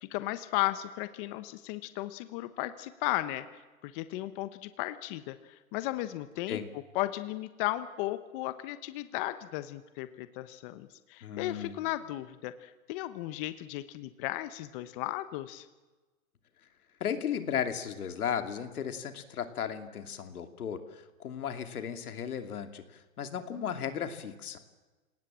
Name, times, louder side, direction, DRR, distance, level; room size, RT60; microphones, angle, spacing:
voice 1, 0.0-3.4 3.8-6.6 6.9-15.7, left 16 dB, 35° left, 12 dB, 1.2 m, -35 dB
voice 2, 11.2-11.8 17.0-24.6, left 8 dB, 90° left, 8 dB, 2.9 m, -35 dB
28.0 x 19.0 x 7.6 m, 1.2 s
hypercardioid pair, 145°, 43 cm